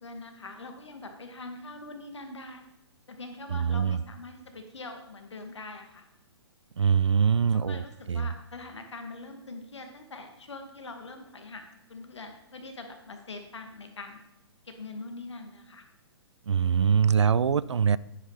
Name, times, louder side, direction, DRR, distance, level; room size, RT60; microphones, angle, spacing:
voice 1, 0.0-2.6 3.1-6.0 7.5-14.2 14.7-15.8, left 3 dB, 80° left, 6 dB, 2.1 m, -43 dB
voice 2, 3.5-4.0 6.8-8.3 16.5-18.0, right 7 dB, 85° right, 20 dB, 0.4 m, -23 dB
10.5 x 9.3 x 4.1 m, 0.91 s
hypercardioid pair, 130°, 15 cm